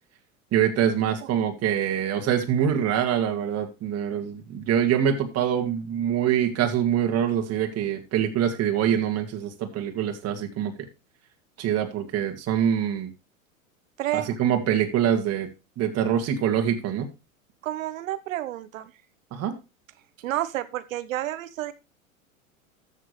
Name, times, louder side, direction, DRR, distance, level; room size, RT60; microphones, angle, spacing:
voice 1, 0.5-10.7 11.6-13.1 14.1-15.5 15.8-17.1 19.3-19.6, right 9 dB, 35° right, 4 dB, 2.2 m, -24 dB
voice 2, 14.0-14.4 17.6-18.9 20.2-21.7, right 14 dB, 70° right, 14 dB, 1.2 m, -30 dB
14.0 x 6.6 x 3.2 m, 0.27 s
hypercardioid pair, 90°, 42 cm